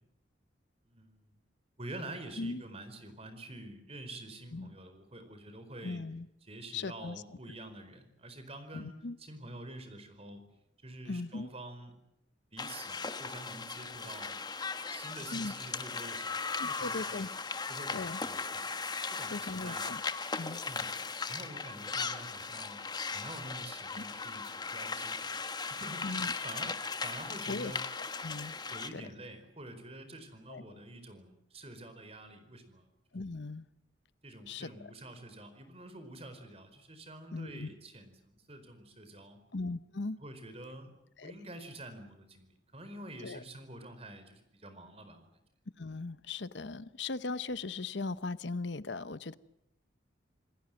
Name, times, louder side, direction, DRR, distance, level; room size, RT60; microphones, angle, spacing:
voice 1, 0.8-1.4 1.8-6.0 6.4-8.9 9.2-10.4 10.8-11.9 12.5-14.4 14.9-17.3 17.7-18.7 19.0-19.9 20.6-20.9 21.3-25.4 25.7-27.8 28.7-32.9 34.2-39.4 40.2-40.9 41.2-45.3, right 1 dB, 30° right, 9 dB, 4.6 m, -47 dB
voice 2, 5.8-6.3 6.7-7.2 8.7-9.2 11.1-11.5 15.3-15.5 16.3-17.3 17.9-18.2 19.3-20.0 20.4-20.6 24.0-24.1 26.0-26.3 27.5-27.7 28.2-28.6 28.9-29.1 30.5-30.6 33.1-33.7 34.5-34.9 37.3-37.7 39.5-40.2 41.2-41.3 43.2-43.4 45.8-49.4, left 3 dB, 70° left, 15 dB, 0.9 m, -38 dB
sound 1, 12.6-28.9, left 4 dB, 20° left, 1.4 m, -38 dB
28.0 x 20.0 x 7.7 m, 0.84 s
head